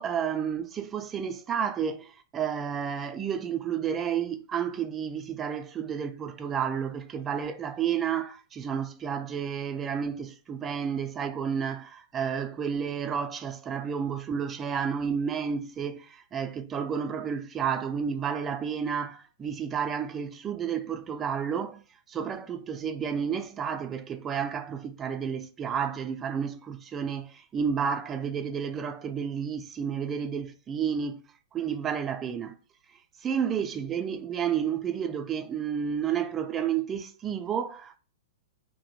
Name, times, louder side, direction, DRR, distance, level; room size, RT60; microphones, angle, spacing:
voice 1, 0.0-21.8 22.1-31.2 31.5-32.5 33.2-38.0, right 7 dB, 25° right, 0.4 m, -31 dB
2.2 x 2.1 x 2.8 m
figure-of-eight pair, 105°, 0 cm